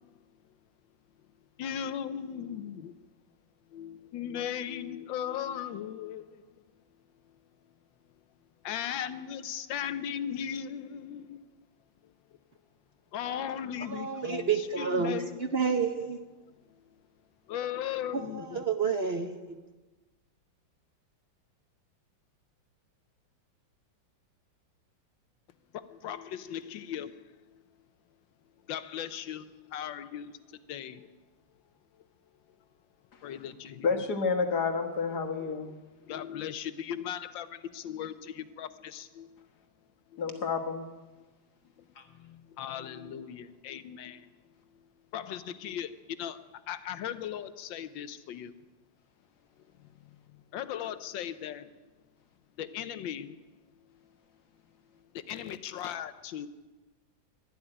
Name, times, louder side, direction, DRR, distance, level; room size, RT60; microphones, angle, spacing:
voice 1, 1.6-2.9 3.7-6.2 8.6-11.4 13.1-15.6 17.5-18.6 25.7-27.1 28.7-30.3 30.7-31.1 33.2-34.0 36.1-39.3 40.3-40.6 42.2-44.2 45.1-45.9 46.2-46.4 46.7-48.5 50.5-51.6 52.6-53.4 55.3-56.5, left 9 dB, 85° left, 12 dB, 1.5 m, -37 dB
voice 2, 13.9-15.2 15.5-16.2 18.1-19.6, right 5 dB, 45° right, 6 dB, 0.8 m, -29 dB
voice 3, 33.8-35.7 40.2-40.8 42.0-42.1, left 5 dB, 60° left, 5 dB, 1.9 m, -29 dB
12.5 x 12.0 x 10.0 m, 1.2 s
omnidirectional pair, 2.1 m